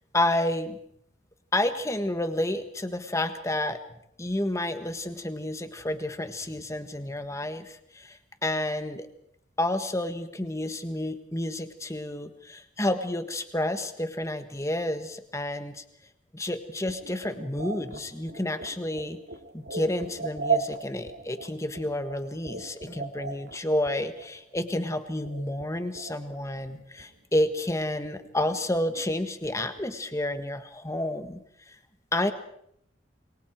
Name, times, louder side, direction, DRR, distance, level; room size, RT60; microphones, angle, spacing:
voice 1, 0.1-0.8 1.5-3.8 4.2-9.1 9.6-15.8 16.3-19.2 19.5-31.4 31.7-31.8 32.1-32.3, left 1 dB, 15° left, 9 dB, 1.6 m, -30 dB
sound 1, 16.9-26.4 26.6-27.4 27.7-30.0, right 5 dB, 65° right, 2.4 m, -37 dB
28.0 x 23.5 x 4.7 m, 0.70 s
head